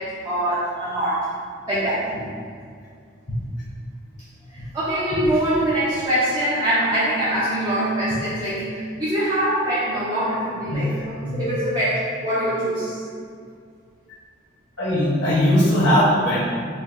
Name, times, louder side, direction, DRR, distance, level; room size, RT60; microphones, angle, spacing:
voice 1, 0.0-1.4 1.7-2.1 4.5-13.1, right 1 dB, 20° right, -11 dB, 0.7 m, -23 dB
voice 2, 10.7-11.4 14.8-16.4, equal, 75° left, -10 dB, 1.2 m, -19 dB
4.2 x 2.3 x 3.7 m, 2.2 s
head